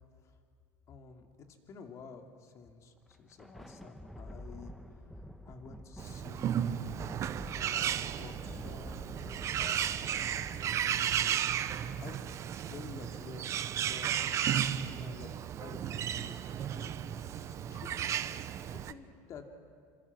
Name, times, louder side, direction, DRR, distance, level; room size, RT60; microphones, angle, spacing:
voice 1, 0.9-4.8 5.5-7.9 8.2-9.8 10.6-11.4 12.0-12.2 12.6-13.5 13.8-14.2 14.9-15.3 15.6-17.9 18.7-19.5, left 5 dB, 40° left, 4 dB, 2.8 m, -51 dB
Thunder, 3.0-13.7, equal, ahead, 1.3 m, -49 dB
Bird, 6.0-18.9, right 10 dB, 40° right, 0.9 m, -34 dB
27.0 x 26.5 x 6.1 m, 2.2 s
supercardioid pair, 120°, 8 cm